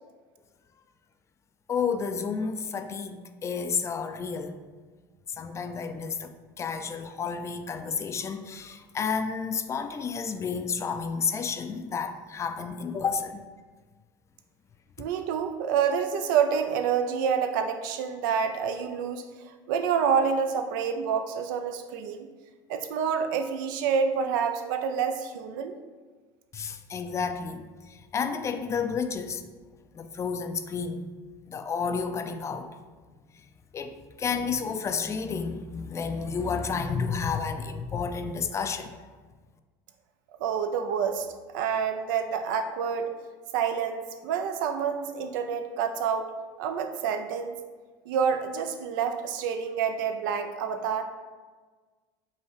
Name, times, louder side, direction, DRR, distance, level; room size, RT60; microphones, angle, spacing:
voice 1, 1.7-4.5 5.3-13.4 26.5-29.4 29.9-31.1 31.5-32.7 33.7-39.0, left 5 dB, 30° left, 8 dB, 0.3 m, -31 dB
voice 2, 15.0-19.2 19.7-22.3 22.7-25.7 40.4-41.3 41.5-43.1 43.5-46.2 46.6-47.6 48.1-51.0, right 7 dB, 85° right, 6 dB, 0.4 m, -28 dB
5.4 x 2.2 x 3.2 m, 1.4 s
supercardioid pair, 100°, 10 cm